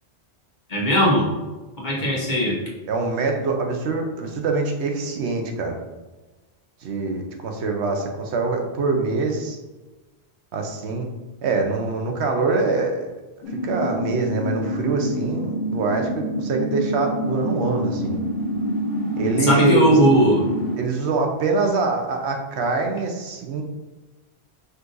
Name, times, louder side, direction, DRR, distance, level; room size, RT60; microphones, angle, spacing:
voice 1, 0.7-1.3 1.8-2.6 19.4-20.5, equal, 45° left, -3 dB, 1.1 m, -18 dB
voice 2, 2.9-5.8 6.8-9.6 10.5-11.1 11.4-13.1 13.5-18.2 19.2-19.9 20.8-23.6, right 3 dB, 85° right, 3 dB, 1.0 m, -24 dB
sound 1, 13.4-20.8, equal, 65° left, 0.9 m, -27 dB
5.3 x 2.5 x 3.8 m, 1.2 s
omnidirectional pair, 1.1 m